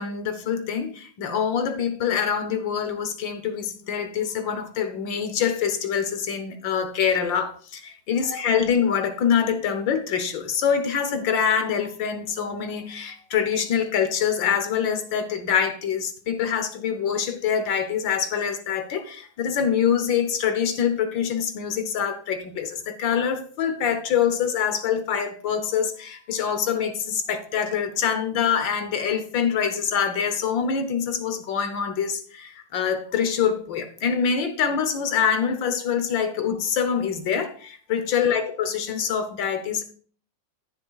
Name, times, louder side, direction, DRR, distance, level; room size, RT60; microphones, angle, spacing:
voice 1, 0.0-39.8, left 7 dB, 80° left, 1.7 m, -25 dB
14.0 x 6.5 x 2.4 m
omnidirectional pair, 2.0 m